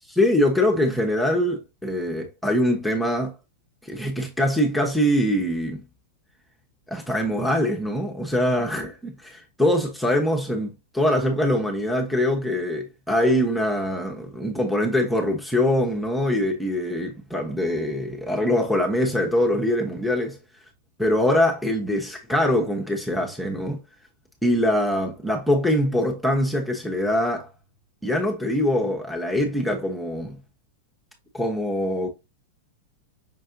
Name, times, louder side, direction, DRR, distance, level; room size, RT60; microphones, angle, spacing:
voice 1, 0.2-3.3 3.8-5.8 6.9-20.4 21.0-23.8 24.4-27.5 28.0-30.4 31.3-32.1, left 1 dB, 5° left, 1.0 m, -23 dB
5.8 x 3.3 x 2.6 m
hypercardioid pair, 105°, 0 cm